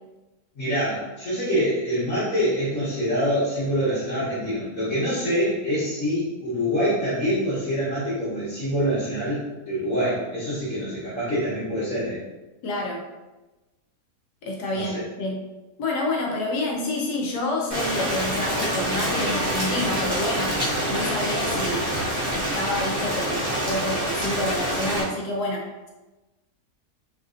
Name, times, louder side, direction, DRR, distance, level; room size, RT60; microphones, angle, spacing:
voice 1, 0.5-12.2 14.7-15.0, equal, 60° left, -12 dB, 1.5 m, -25 dB
voice 2, 12.6-13.0 14.4-15.4 15.8-20.6 20.9-21.8 22.3-25.9, left 2 dB, 80° left, -1 dB, 1.2 m, -28 dB
Rain, 17.7-25.0, equal, 35° right, 0.6 m, -26 dB
3.2 x 2.5 x 2.4 m, 1.1 s
omnidirectional pair, 1.7 m